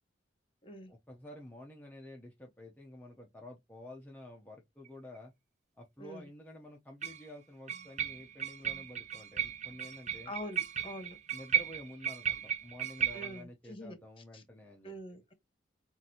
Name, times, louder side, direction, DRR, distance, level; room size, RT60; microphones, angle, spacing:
voice 1, 0.9-5.3 5.7-10.3 11.3-14.9, left 1 dB, 10° left, 0.7 m, -50 dB
sound 1, 4.9-5.0 7.0-7.3 7.7-13.4, right 8 dB, 35° right, 0.5 m, -35 dB
voice 2, 10.2-11.2 13.1-14.0 14.3-14.4 14.8-15.3, equal, 30° left, 1.1 m, -44 dB
5.9 x 2.6 x 2.8 m
head